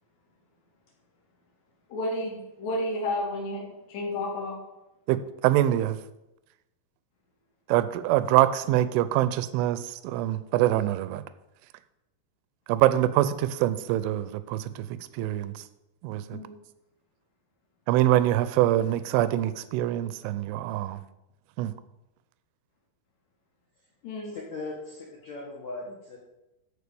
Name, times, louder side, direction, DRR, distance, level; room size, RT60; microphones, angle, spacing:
voice 1, 1.9-3.6 3.9-4.6 16.3-16.5 24.0-24.4, left 1 dB, 55° left, -3 dB, 5.1 m, -31 dB
voice 2, 5.1-6.0 7.7-11.2 12.7-14.9 15.1-15.6 16.0-16.4 17.9-21.0 21.6-21.7, right 13 dB, 80° right, 14 dB, 2.9 m, -24 dB
voice 3, 24.2-26.2, left 2 dB, 75° left, -2 dB, 1.6 m, -39 dB
14.0 x 4.9 x 6.9 m, 0.93 s
omnidirectional pair, 5.8 m